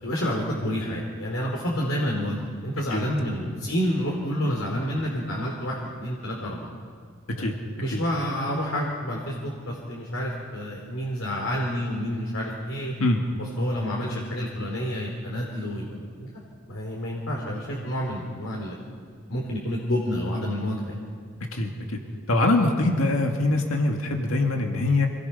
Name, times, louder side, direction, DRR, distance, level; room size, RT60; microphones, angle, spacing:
voice 1, 0.0-6.7 7.4-7.5 7.8-12.9 13.4-16.3 16.7-18.8 19.3-21.0, equal, 70° left, -2 dB, 3.3 m, -29 dB
voice 2, 21.5-22.0 22.3-25.1, left 2 dB, 85° left, 2 dB, 2.0 m, -23 dB
26.5 x 20.0 x 5.7 m, 2.1 s
head